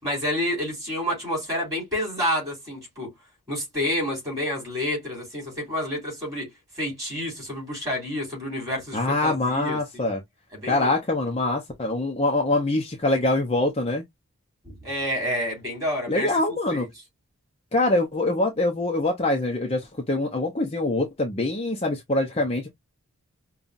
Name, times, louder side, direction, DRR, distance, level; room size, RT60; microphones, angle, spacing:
voice 1, 0.0-3.1 3.5-6.5 6.8-10.1 10.5-11.0 14.6-16.3 16.7-16.9, left 1 dB, 15° right, 3.5 m, -29 dB
voice 2, 8.9-10.2 10.7-14.0 16.1-16.9 17.7-22.7, left 2 dB, 25° left, 0.6 m, -24 dB
5.4 x 2.3 x 2.5 m
head